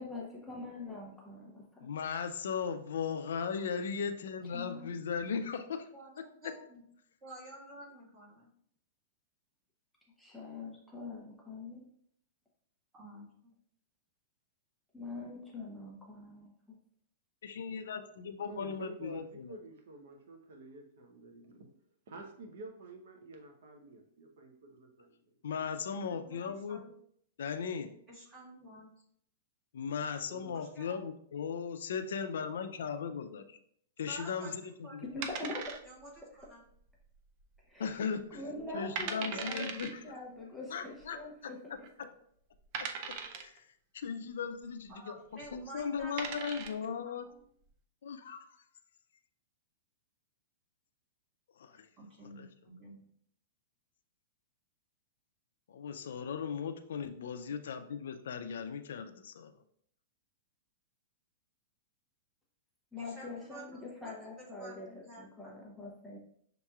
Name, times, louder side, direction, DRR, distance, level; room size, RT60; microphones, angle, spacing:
voice 1, 0.0-1.9 4.5-4.9 10.2-11.9 14.9-16.5 35.0-35.8 37.7-39.7 40.0-41.6 62.9-64.9 65.2-66.2, left 2 dB, ahead, -4 dB, 0.6 m, -43 dB
voice 2, 1.8-5.9 6.4-6.5 17.4-19.5 25.4-26.8 27.4-27.9 29.7-33.6 34.0-35.1 37.8-38.4 38.7-39.9 40.7-41.2 42.8-43.5 43.9-45.2 45.5-47.3 48.0-48.5 51.6-51.9 52.4-52.5 55.7-59.5, left 6 dB, 80° left, 9 dB, 0.4 m, -37 dB
voice 3, 5.9-6.8 7.2-8.5 13.0-13.2 26.1-26.9 28.1-29.0 30.5-31.0 34.1-35.2 35.8-36.1 36.5-36.6 44.9-46.9 47.2-47.4 52.0-53.0 63.0-63.8 64.0-65.6, right 1 dB, 20° right, -6 dB, 1.7 m, -51 dB
voice 4, 18.4-21.7 22.1-25.2 30.3-30.6, right 2 dB, 65° right, 4 dB, 0.7 m, -49 dB
sound 1, 35.2-36.2 36.4-36.5 37.1-37.6 37.9-38.0 38.6-38.7 39.0-39.9 41.0-41.1 41.8-41.9 42.7-43.6 45.4-45.6 46.0-46.9, right 6 dB, 40° right, 0.4 m, -39 dB
6.4 x 3.0 x 2.3 m, 0.66 s
hypercardioid pair, 160°, 0 cm